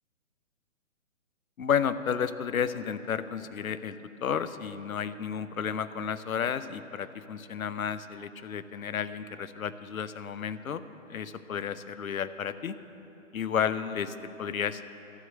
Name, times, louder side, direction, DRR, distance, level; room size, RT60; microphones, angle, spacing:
voice 1, 1.6-10.8 11.1-12.8 13.3-14.8, left 7 dB, 80° left, 14 dB, 0.7 m, -32 dB
12.5 x 7.5 x 7.6 m, 2.9 s
figure-of-eight pair, 135°, 41 cm